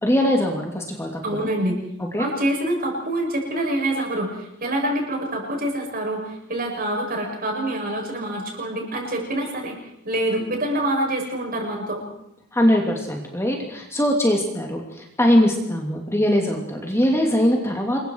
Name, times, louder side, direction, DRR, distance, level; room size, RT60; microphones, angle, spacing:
voice 1, 0.0-1.5 2.1-2.3 12.5-18.0, equal, 10° left, 1 dB, 2.9 m, -21 dB
voice 2, 1.2-1.8 2.2-9.8 10.0-12.0, right 1 dB, 45° right, 0 dB, 7.9 m, -26 dB
28.5 x 23.0 x 4.8 m, 0.81 s
head